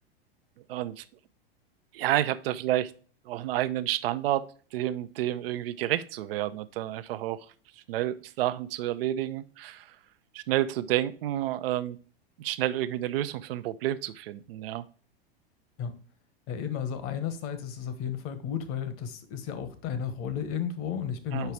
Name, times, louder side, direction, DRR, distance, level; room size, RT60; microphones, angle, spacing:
voice 1, 0.7-1.0 1.9-2.9 3.3-7.4 7.9-9.9 10.3-12.0 12.4-14.8 21.3-21.5, right 13 dB, 70° right, 13 dB, 0.6 m, -30 dB
voice 2, 16.5-21.5, left 8 dB, 45° left, 11 dB, 1.2 m, -33 dB
5.7 x 4.8 x 4.6 m, 0.40 s
hypercardioid pair, 100°, 30 cm